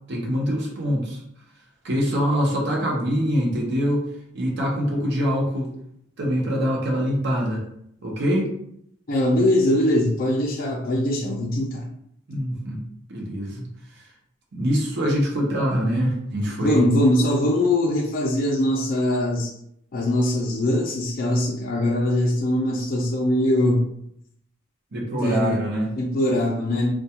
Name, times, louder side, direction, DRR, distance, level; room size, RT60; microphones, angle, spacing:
voice 1, 0.1-1.2 1.8-4.0 4.3-5.7 6.2-7.6 8.0-8.5 12.3-12.8 13.1-13.7 14.0-14.1 14.5-16.8 24.9-25.9, equal, 60° right, -2 dB, 0.6 m, -24 dB
voice 2, 9.1-11.9 16.6-19.5 19.9-23.8 25.2-25.6 26.0-26.9, left 1 dB, 45° left, -1 dB, 0.4 m, -21 dB
2.2 x 2.2 x 2.8 m, 0.72 s
head